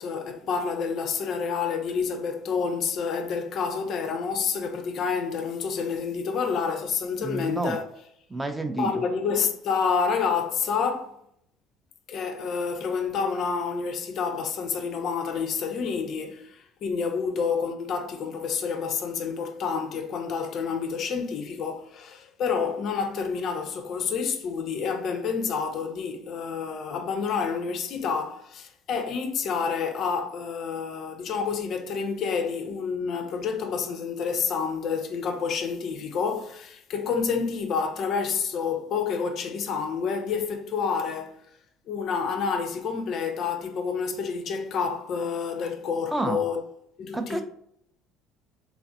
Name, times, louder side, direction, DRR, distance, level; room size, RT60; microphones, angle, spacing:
voice 1, 0.0-7.8 8.8-11.2 12.1-41.4 41.9-46.6 47.0-47.4, left 5 dB, 50° left, 0.4 m, -28 dB
voice 2, 7.2-7.8 8.3-9.0 46.1-46.4 47.1-47.4, right 2 dB, 15° right, 0.4 m, -29 dB
3.2 x 2.4 x 2.5 m
figure-of-eight pair, 60°, 0 cm